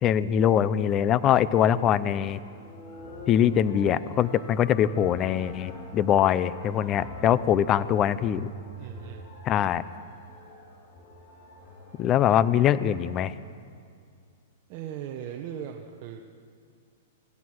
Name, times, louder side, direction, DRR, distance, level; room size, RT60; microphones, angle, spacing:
voice 1, 0.0-2.4 3.3-8.5 9.5-9.8 12.0-13.3, left 10 dB, 25° left, 16 dB, 0.6 m, -23 dB
sound 1, 2.1-13.4, left 1 dB, 45° left, 5.5 m, -45 dB
voice 2, 7.2-7.8 8.7-9.3 14.7-16.2, right 9 dB, 40° right, 2 dB, 1.3 m, -39 dB
27.0 x 16.5 x 6.3 m, 2.3 s
hypercardioid pair, 150°, 0 cm